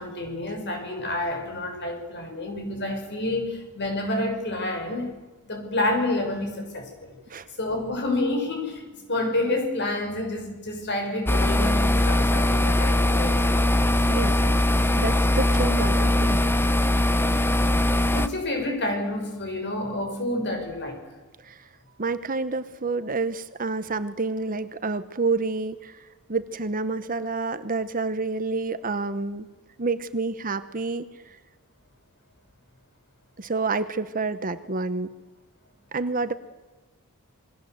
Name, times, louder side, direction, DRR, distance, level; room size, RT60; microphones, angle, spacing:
voice 1, 0.0-5.2 5.4-7.2 7.6-13.6 18.1-21.0, left 1 dB, 50° left, 4 dB, 6.2 m, -29 dB
sound 1, 11.3-18.3, left 1 dB, 10° left, 0.8 m, -21 dB
voice 2, 14.1-14.6 14.9-16.5 21.4-21.7 22.0-29.5 29.8-31.4 33.4-35.1 35.9-36.3, right 3 dB, 40° right, 12 dB, 1.0 m, -29 dB
27.5 x 21.5 x 8.0 m, 1.2 s
head